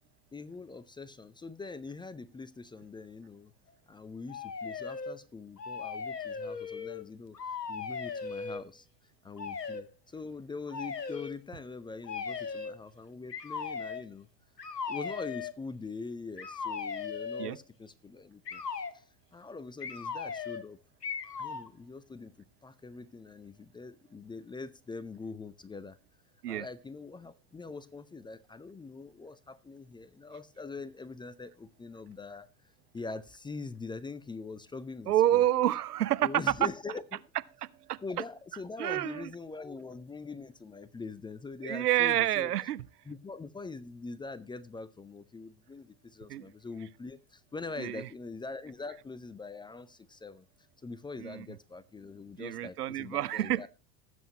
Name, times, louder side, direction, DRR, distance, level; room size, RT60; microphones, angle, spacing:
voice 1, 0.3-3.5 3.9-7.4 7.7-8.9 9.2-14.3 14.9-18.6 18.9-19.0 19.3-20.8 21.4-22.3 22.6-26.0 26.5-32.5 32.9-35.4 36.2-37.2 38.0-42.5 43.1-50.5 50.8-53.7, left 4 dB, 10° left, 0.6 m, -43 dB
sound 1, 4.3-5.2 5.6-7.1 7.3-8.6 9.4-9.9 10.7-11.3 12.0-12.8 13.3-14.1 14.6-15.5 16.4-17.6 18.5-19.0 19.8-20.7 21.0-21.7, left 5 dB, 90° left, 0.9 m, -38 dB
voice 2, 35.1-36.3 37.6-38.0 38.8-39.3 41.6-42.8 46.3-46.5 47.8-48.1 51.2-51.5 52.4-53.7, right 13 dB, 75° right, 0.7 m, -28 dB
19.5 x 7.9 x 2.9 m
figure-of-eight pair, 80°, 48 cm